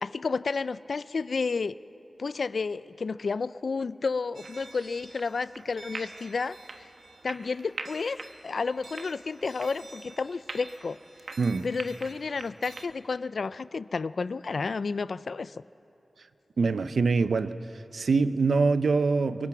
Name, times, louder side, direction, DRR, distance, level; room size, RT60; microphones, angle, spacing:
voice 1, 0.0-1.7 2.2-6.9 7.2-11.0 11.6-15.6, left 4 dB, 75° left, 16 dB, 0.4 m, -31 dB
sound 1, 4.3-12.9, right 3 dB, 75° right, 1.2 m, -44 dB
voice 2, 16.6-17.5 17.9-19.5, right 4 dB, 90° right, 12 dB, 0.6 m, -24 dB
25.0 x 22.0 x 6.0 m, 3.0 s
wide cardioid pair, 105°, 0 cm